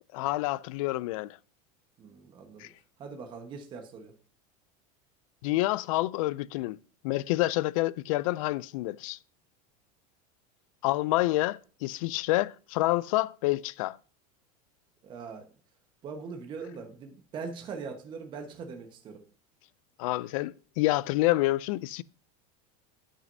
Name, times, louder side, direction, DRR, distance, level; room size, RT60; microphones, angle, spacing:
voice 1, 0.1-1.4 2.6-2.7 5.4-6.8 7.0-9.2 10.8-14.0 20.0-22.0, left 18 dB, 60° left, 0.4 m, -28 dB
voice 2, 2.0-2.7 3.0-4.1 15.0-15.5 16.0-19.2, right 5 dB, 25° right, 1.2 m, -41 dB
15.5 x 6.2 x 2.7 m
supercardioid pair, 175°, 20 cm